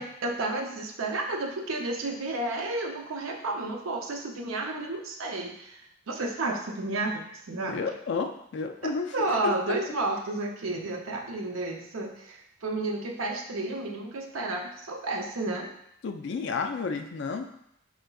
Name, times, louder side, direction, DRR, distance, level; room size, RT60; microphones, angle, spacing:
voice 1, 0.0-5.8 6.1-7.8 8.8-15.7, right 2 dB, 85° right, 2 dB, 0.6 m, -32 dB
voice 2, 7.7-9.1 9.4-9.8 16.0-17.4, left 4 dB, 60° left, 6 dB, 0.3 m, -31 dB
4.3 x 3.8 x 2.3 m, 0.75 s
head